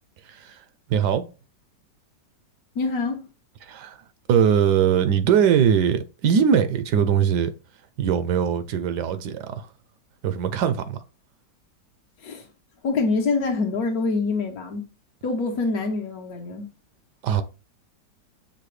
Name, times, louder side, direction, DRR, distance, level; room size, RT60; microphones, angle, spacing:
voice 1, 0.3-0.6 0.9-1.3 3.6-4.0 4.3-7.5 8.0-9.7 10.2-11.0 17.2-17.4, right 8 dB, 75° right, 1.1 m, -21 dB
voice 2, 2.7-3.3 12.2-12.5 12.8-14.9 15.2-16.7, left 3 dB, 65° left, 1.2 m, -25 dB
6.6 x 2.2 x 3.1 m
omnidirectional pair, 1.9 m